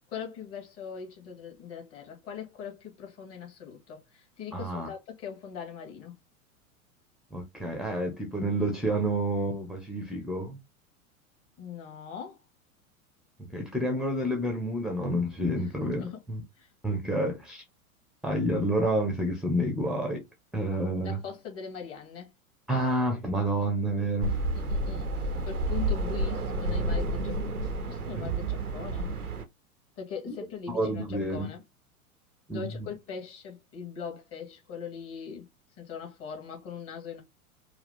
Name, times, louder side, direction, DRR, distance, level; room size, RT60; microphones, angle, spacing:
voice 1, 0.1-6.2 11.6-12.4 15.9-16.2 16.6-16.7 21.0-22.3 24.5-25.1 25.5-29.1 30.0-31.6 32.5-35.5 35.8-37.2, left 7 dB, 30° left, 2.4 m, -41 dB
voice 2, 4.5-4.9 7.3-10.6 13.5-16.4 16.8-17.6 18.2-20.2 20.5-21.2 22.7-24.4 28.2-28.3 30.3-30.4 30.7-31.5 32.5-32.9, right 1 dB, ahead, 0.9 m, -29 dB
sound 1, 24.2-29.4, right 2 dB, 90° right, 0.9 m, -30 dB
4.7 x 2.5 x 3.7 m
figure-of-eight pair, 95°, 43 cm